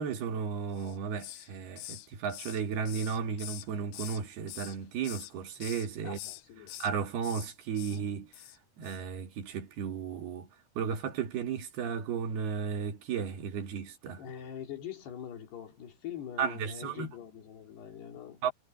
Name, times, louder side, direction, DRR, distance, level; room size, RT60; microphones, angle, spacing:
voice 1, 0.0-6.2 6.8-8.3 8.8-10.5 10.8-14.2 16.4-17.1 18.4-18.5, right 6 dB, 70° right, 4.1 m, -34 dB
Hiss, 0.7-1.5 1.8-4.2 4.5-5.3 5.6-5.9 6.1-6.9 7.2-7.5 7.8-8.0 8.3-8.6 8.8-9.0, left 16 dB, 85° left, 3.2 m, -45 dB
voice 2, 6.0-6.7 14.2-18.5, left 9 dB, 70° left, 5.4 m, -43 dB
omnidirectional pair, 4.9 m